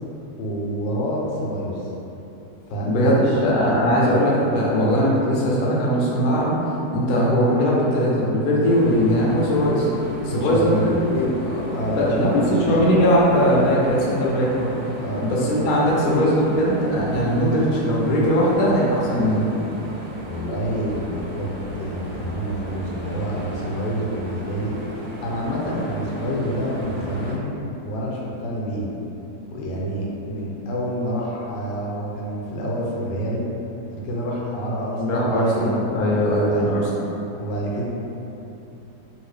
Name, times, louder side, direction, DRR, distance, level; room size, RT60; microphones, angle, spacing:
voice 1, 0.4-1.9 2.7-3.4 10.3-11.0 11.7-12.8 15.0-15.3 20.3-27.5 27.8-28.9 29.5-33.4 33.9-35.8 36.5-36.7 37.4-37.9, equal, 90° left, -4 dB, 1.3 m, -27 dB
voice 2, 2.8-6.5 6.9-9.9 10.2-14.7 15.2-19.5 35.0-36.8, equal, 65° left, -5 dB, 1.0 m, -20 dB
sound 1, 8.6-27.4, right 1 dB, 75° right, 0.6 m, -36 dB
2.9 x 2.7 x 3.2 m, 2.9 s
omnidirectional pair, 1.8 m